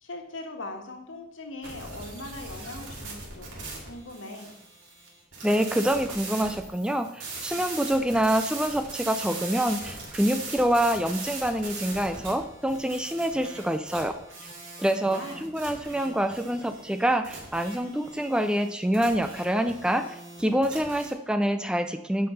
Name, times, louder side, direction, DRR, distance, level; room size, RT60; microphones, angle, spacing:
voice 1, 0.0-3.5 3.8-4.5 14.9-15.5, left 2 dB, 80° left, 3 dB, 1.7 m, -40 dB
sound 1, 1.6-21.1, right 3 dB, 75° right, 3.0 m, -40 dB
voice 2, 5.4-14.1 14.8-22.3, right 1 dB, 5° right, 9 dB, 0.4 m, -26 dB
9.6 x 5.9 x 5.6 m, 0.84 s
head